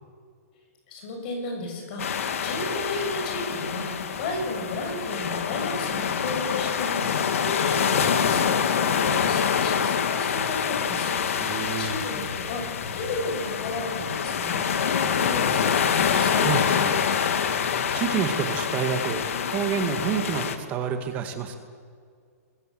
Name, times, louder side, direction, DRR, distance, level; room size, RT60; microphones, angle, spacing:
voice 1, 0.9-15.8, left 2 dB, 35° left, 2 dB, 7.2 m, -33 dB
sound 1, 2.0-20.6, left 7 dB, 60° left, 2.1 m, -26 dB
voice 2, 11.4-12.0 16.1-17.0 17.9-19.2 19.5-21.6, right 7 dB, 20° right, 6 dB, 1.9 m, -28 dB
29.5 x 22.0 x 7.8 m, 2.1 s
hypercardioid pair, 170°, 8 cm